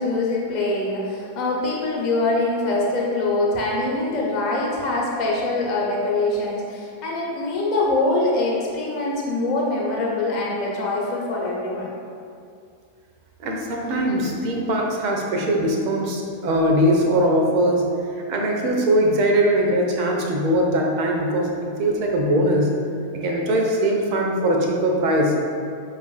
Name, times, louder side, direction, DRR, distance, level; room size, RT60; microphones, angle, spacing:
voice 1, 0.0-11.9, left 2 dB, 40° left, -4 dB, 0.9 m, -24 dB
voice 2, 13.4-17.8 18.1-22.7 23.1-25.3, right 1 dB, 45° right, 0 dB, 0.5 m, -21 dB
5.2 x 2.4 x 2.4 m, 2.3 s
figure-of-eight pair, 90°, 0 cm